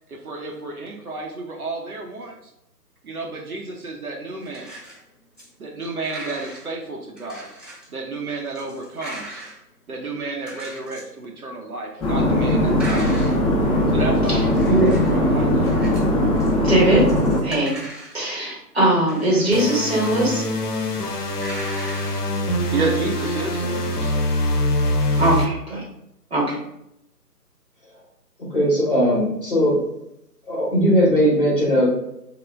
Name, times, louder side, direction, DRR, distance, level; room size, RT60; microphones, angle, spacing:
voice 1, 0.1-2.5 3.0-4.7 5.6-7.5 7.9-9.4 9.9-13.3 13.9-15.7 22.7-24.2, right 3 dB, 60° right, 0 dB, 0.7 m, -31 dB
sound 1, 4.4-5.0 5.4-5.5 5.8-6.7 7.2-7.9 8.4-9.6 10.4-11.1 12.8-13.4 14.3-15.2 15.4-16.1 16.4-16.5 17.0-18.2 19.0-19.7 20.9-21.1 21.3-22.3 22.8-22.9 23.1-23.3, right 1 dB, 15° right, 0.9 m, -39 dB
sound 2, 12.0-17.4, left 1 dB, ahead, 0.5 m, -19 dB
voice 2, 16.6-17.1 17.4-17.7 18.1-20.4 25.2-25.8 26.3-26.6, right 1 dB, 40° right, -5 dB, 1.2 m, -20 dB
sound 3, 19.5-25.4, left 1 dB, 70° left, 0.6 m, -24 dB
voice 3, 28.5-29.8 30.5-31.9, equal, 35° left, -5 dB, 0.8 m, -18 dB
3.2 x 2.2 x 3.3 m, 0.81 s
figure-of-eight pair, 150°, 49 cm